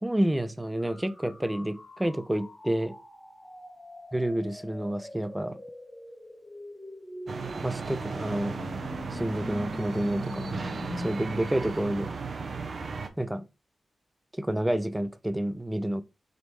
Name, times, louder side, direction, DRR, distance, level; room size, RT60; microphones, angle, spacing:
voice 1, 0.0-2.9 4.1-5.6 7.6-8.6 9.1-10.6 11.0-12.2 13.2-13.5 14.3-16.0, right 1 dB, 10° right, 0.4 m, -29 dB
sound 1, 0.8-11.1, left 1 dB, 15° left, 1.1 m, -43 dB
sound 2, 7.3-13.1, right 4 dB, 60° right, 0.6 m, -35 dB
4.0 x 3.1 x 3.3 m
cardioid pair, 80°, 0 cm